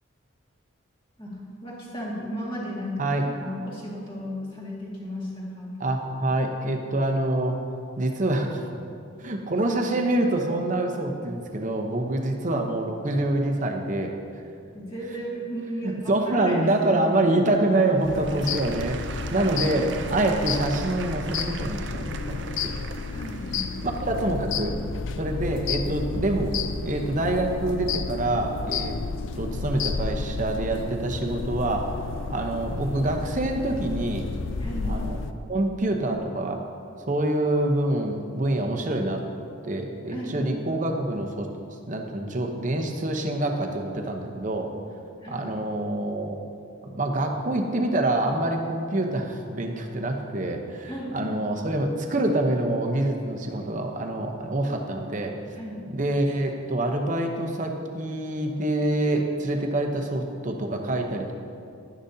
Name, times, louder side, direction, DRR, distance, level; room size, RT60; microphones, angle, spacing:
voice 1, 1.2-5.8 14.7-16.5 16.9-17.0 23.1-23.7 34.6-35.0 40.1-40.4 45.2-45.5 50.9-51.4 55.6-55.9, equal, 25° left, -6 dB, 2.0 m, -35 dB
voice 2, 5.8-7.6 8.0-8.7 9.2-14.1 15.8-23.0 23.8-24.7 25.1-26.5 26.8-28.9 29.4-31.9 32.3-34.3 34.8-35.2 35.5-36.6 37.1-41.5 41.9-44.7 45.3-46.4 46.9-55.3 55.9-61.3, right 1 dB, 40° right, 2 dB, 0.8 m, -26 dB
Applause / Crowd, 17.5-26.4 27.0-27.1, right 6 dB, 60° right, 0.4 m, -41 dB
sound 1, 18.0-35.3, left 4 dB, 65° left, 0.4 m, -32 dB
11.5 x 10.0 x 2.8 m, 2.4 s
head